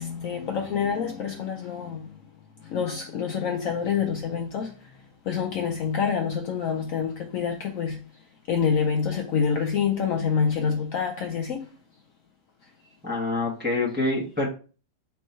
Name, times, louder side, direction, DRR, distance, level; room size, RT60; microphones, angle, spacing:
voice 1, 0.0-2.1 2.6-4.7 5.3-8.0 8.5-11.7, left 6 dB, 70° left, 0.8 m, -27 dB
voice 2, 13.0-14.5, left 2 dB, 10° right, 0.7 m, -26 dB
4.5 x 2.6 x 4.3 m
omnidirectional pair, 1.8 m